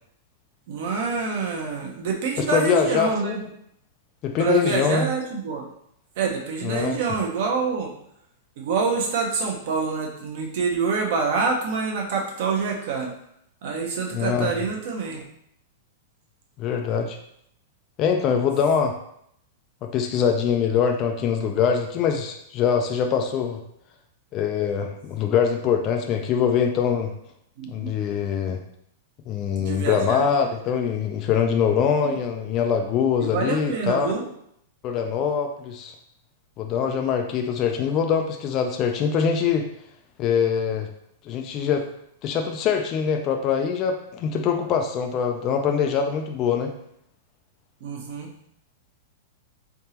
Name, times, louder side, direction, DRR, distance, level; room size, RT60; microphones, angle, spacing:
voice 1, 0.7-3.4 4.4-5.7 6.2-7.9 8.6-13.1 13.6-15.2 27.6-27.9 29.6-30.2 32.0-32.2 33.2-34.3 47.8-48.3, right 5 dB, 50° right, 1 dB, 0.8 m, -26 dB
voice 2, 2.4-3.5 4.2-5.1 6.6-7.0 14.1-14.5 16.6-17.2 18.0-18.9 19.8-23.6 24.3-27.1 27.7-28.6 29.3-34.1 34.8-35.9 36.6-39.7 40.2-40.9 41.3-41.8 42.2-46.7, left 7 dB, 25° left, 4 dB, 0.3 m, -23 dB
3.8 x 3.6 x 2.8 m, 0.72 s
supercardioid pair, 165°, 0 cm